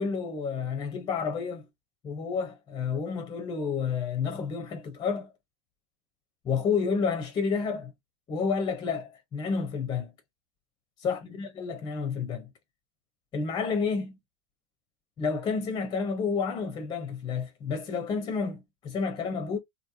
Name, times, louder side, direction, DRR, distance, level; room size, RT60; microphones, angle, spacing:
voice 1, 0.0-1.6 2.0-5.3 6.4-7.9 8.3-10.1 11.0-12.5 13.3-14.2 15.2-19.6, left 5 dB, 30° left, 0.8 m, -30 dB
3.3 x 2.1 x 2.6 m
figure-of-eight pair, 85°, 15 cm